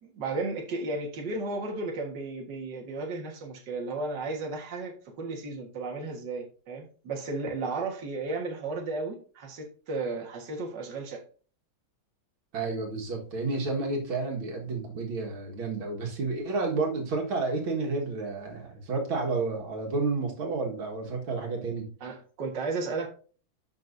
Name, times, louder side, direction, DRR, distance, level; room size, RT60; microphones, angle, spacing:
voice 1, 0.0-11.2 22.0-23.1, right 3 dB, 60° right, 1 dB, 2.1 m, -34 dB
voice 2, 12.5-21.9, right 3 dB, 80° right, 0 dB, 2.5 m, -30 dB
11.5 x 5.9 x 2.6 m, 0.39 s
omnidirectional pair, 2.2 m